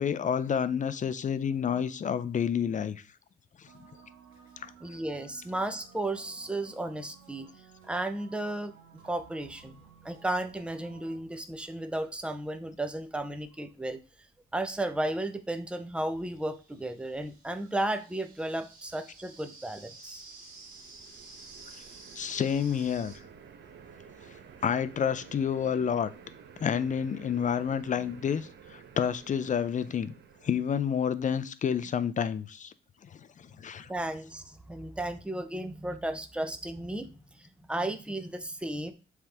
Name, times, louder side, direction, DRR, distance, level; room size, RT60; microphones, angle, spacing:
voice 1, 0.0-3.0 4.6-4.7 22.2-23.1 24.6-26.1 26.6-30.1 30.4-32.7 33.6-33.9, left 7 dB, 40° left, 0.6 m, -29 dB
sound 1, 3.7-11.2, right 7 dB, 85° right, 1.2 m, -55 dB
voice 2, 4.8-7.5 7.8-8.7 9.0-14.0 14.5-20.2 33.9-37.1 37.3-38.9, right 1 dB, 5° right, 0.7 m, -34 dB
sound 2, 15.7-23.2, right 3 dB, 45° right, 2.5 m, -52 dB
sound 3, 20.0-31.4, right 6 dB, 65° right, 1.0 m, -52 dB
7.6 x 3.5 x 3.5 m
cardioid pair, 90°, 20 cm